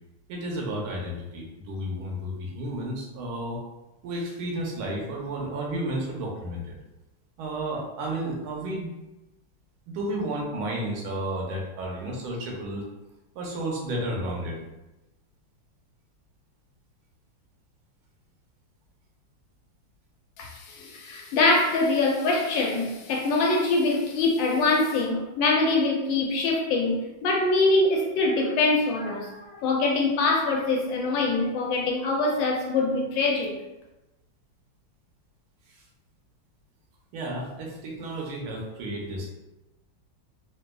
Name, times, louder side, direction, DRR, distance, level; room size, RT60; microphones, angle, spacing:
voice 1, 0.3-3.6 4.0-6.8 7.4-8.9 9.9-12.8 13.3-14.6 35.7-35.8 37.1-39.3, right 1 dB, 90° right, -1 dB, 1.6 m, -32 dB
voice 2, 20.4-33.5, left 3 dB, 75° left, 0 dB, 1.3 m, -24 dB
3.9 x 2.6 x 2.2 m, 0.99 s
omnidirectional pair, 2.2 m